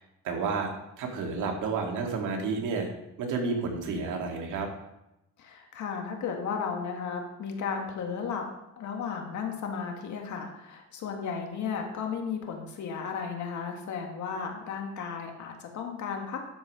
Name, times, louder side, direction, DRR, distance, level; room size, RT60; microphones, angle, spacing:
voice 1, 0.2-0.7 1.0-2.9 3.2-4.7, right 4 dB, 85° right, 2 dB, 2.0 m, -30 dB
voice 2, 5.4-8.5 8.8-16.4, left 6 dB, 70° left, 2 dB, 1.9 m, -34 dB
12.0 x 4.9 x 5.5 m, 0.89 s
cardioid pair, 90°, 30 cm